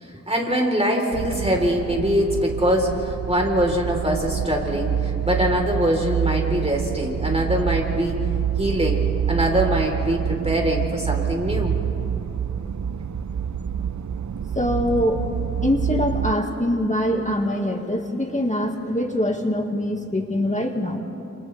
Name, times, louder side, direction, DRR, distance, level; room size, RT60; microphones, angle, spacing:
voice 1, 0.0-8.2 8.6-11.7, equal, 20° right, 0 dB, 3.9 m, -23 dB
sound 1, 1.1-16.3, right 8 dB, 70° right, 0.5 m, -27 dB
voice 2, 14.6-15.3 15.6-21.0, left 1 dB, 25° left, 2 dB, 2.0 m, -23 dB
29.5 x 27.5 x 3.4 m, 2.8 s
wide cardioid pair, 55°, 30 cm